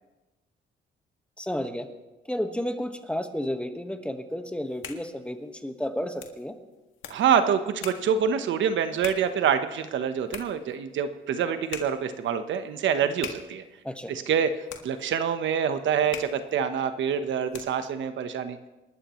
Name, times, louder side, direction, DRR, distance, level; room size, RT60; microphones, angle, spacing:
voice 1, 1.4-1.9 2.2-6.5 13.8-14.1, equal, 5° left, 6 dB, 1.5 m, -32 dB
sound 1, 4.5-18.0, left 8 dB, 80° left, 1.8 m, -45 dB
voice 2, 7.1-13.6 14.1-14.5 14.8-18.6, right 7 dB, 70° right, 9 dB, 1.1 m, -26 dB
27.5 x 12.5 x 3.1 m, 1.1 s
cardioid pair, 90°, 20 cm